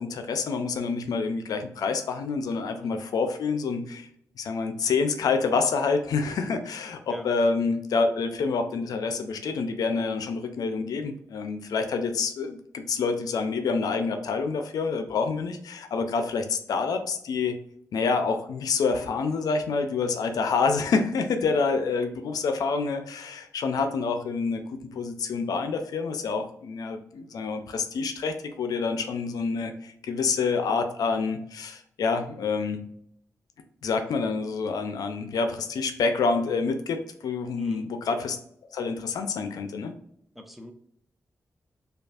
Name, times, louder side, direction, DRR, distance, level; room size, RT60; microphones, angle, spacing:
voice 1, 0.0-4.1 4.4-17.6 17.9-32.8 33.8-38.4 38.7-39.9, left 4 dB, 85° left, 7 dB, 0.4 m, -27 dB
voice 2, 2.8-3.1 7.1-7.3 37.5-37.9 40.3-40.7, left 1 dB, ahead, 5 dB, 0.7 m, -41 dB
5.1 x 2.3 x 2.3 m, 0.70 s
cardioid pair, 60°, 6 cm